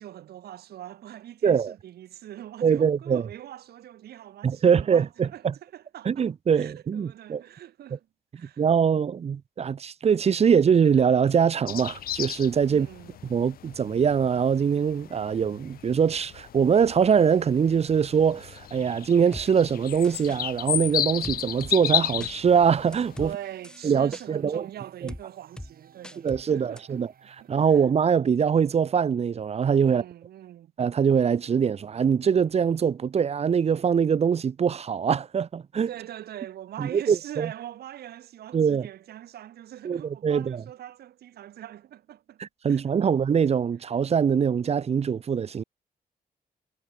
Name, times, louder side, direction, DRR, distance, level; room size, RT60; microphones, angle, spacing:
voice 1, 0.0-8.1 8.3-8.7 12.7-13.2 23.2-27.0 27.4-27.8 29.9-30.7 35.9-43.1, right 12 dB, 85° right, 4.2 m, -43 dB
voice 2, 1.4-1.7 2.6-3.3 4.4-5.5 6.1-7.4 8.6-12.9 13.3-23.3 23.8-24.6 26.2-27.1 27.5-30.0 30.8-35.9 36.8-37.5 38.5-38.9 39.8-40.6 42.4-45.6, right 7 dB, 40° right, 0.5 m, -23 dB
sound 1, 11.7-23.3, left 11 dB, 70° left, 0.5 m, -33 dB
sound 2, 19.3-19.5 20.0-20.4 21.2-21.7 22.2-22.3 22.9-23.3 23.6-24.3 25.1-25.2 25.6-25.7 26.0-26.4 26.8-26.9, left 1 dB, 5° left, 1.3 m, -40 dB
sound 3, 19.4-27.8, right 8 dB, 65° right, 5.2 m, -58 dB
cardioid pair, 70°, 16 cm